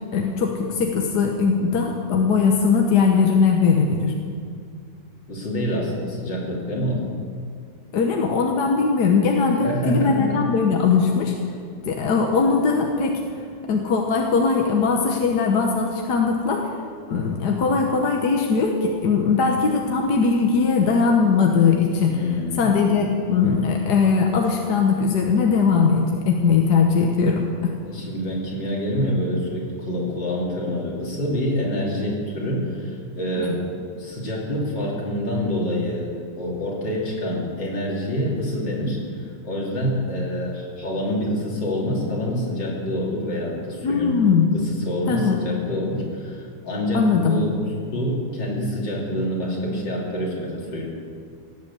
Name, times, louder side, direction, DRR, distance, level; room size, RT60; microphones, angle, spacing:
voice 1, 0.1-4.1 7.9-11.3 11.9-13.2 13.7-16.6 17.1-22.1 22.6-27.7 33.4-33.5 43.8-44.5 45.1-45.4 46.9-47.4, left 5 dB, 65° left, 1 dB, 1.7 m, -20 dB
voice 2, 5.3-7.0 9.6-10.4 22.1-22.8 27.8-44.2 44.5-47.5 47.9-50.9, equal, 85° left, -3 dB, 3.7 m, -26 dB
17.5 x 8.2 x 8.2 m, 2.2 s
omnidirectional pair, 1.9 m